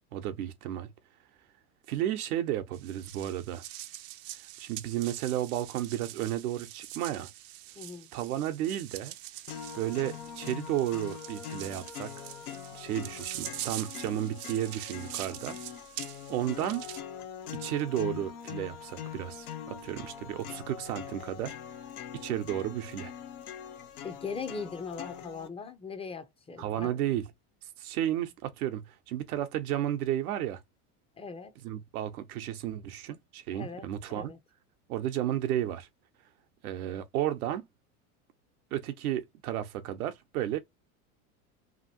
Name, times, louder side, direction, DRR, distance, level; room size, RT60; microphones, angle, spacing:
voice 1, 0.1-0.9 1.9-3.6 4.6-7.3 8.1-9.1 9.7-12.3 12.7-15.6 16.3-16.9 17.5-21.6 22.1-23.1 26.6-27.3 27.8-30.6 31.6-34.3 34.9-35.9 36.6-37.6 38.7-40.6, right 12 dB, 85° right, 0.8 m, -33 dB
sound 1, 2.7-17.0, right 14 dB, 55° right, 0.5 m, -44 dB
voice 2, 7.8-8.1 24.0-27.0 31.2-31.5 33.5-34.4, left 5 dB, 15° left, 0.5 m, -40 dB
sound 2, 9.5-25.5, left 9 dB, 90° left, 0.8 m, -43 dB
2.9 x 2.5 x 2.8 m
supercardioid pair, 105°, 43 cm